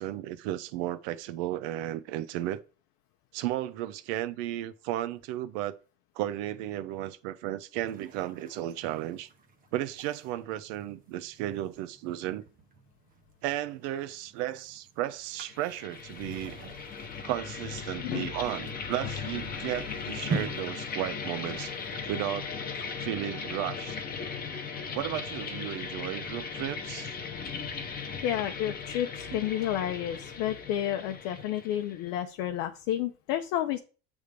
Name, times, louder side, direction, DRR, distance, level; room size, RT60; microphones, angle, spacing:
voice 1, 0.0-2.6 3.3-5.8 6.2-9.3 9.7-12.4 13.4-16.6 17.2-21.7 22.1-22.5 23.0-24.0 24.9-27.1 29.3-29.4, right 13 dB, 65° right, 0.8 m, -34 dB
sound 1, 7.8-22.1, right 4 dB, 20° right, 0.7 m, -44 dB
sound 2, 15.4-32.1, left 5 dB, 25° left, 0.9 m, -38 dB
voice 2, 18.0-18.3 28.2-33.8, left 11 dB, 55° left, 0.7 m, -31 dB
8.1 x 3.6 x 5.0 m
cardioid pair, 150°, 39 cm